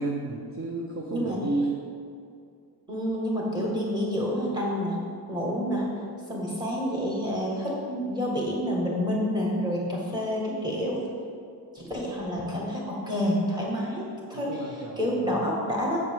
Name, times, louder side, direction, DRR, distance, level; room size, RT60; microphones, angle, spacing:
voice 1, 0.0-1.8 14.3-15.4, right 2 dB, 35° right, 0 dB, 0.7 m, -32 dB
voice 2, 2.9-5.0 5.3-5.9 6.3-11.0 11.7-14.6 15.0-16.0, equal, 10° right, -4 dB, 1.8 m, -28 dB
7.0 x 6.5 x 3.7 m, 2.3 s
cardioid pair, 120°, 42 cm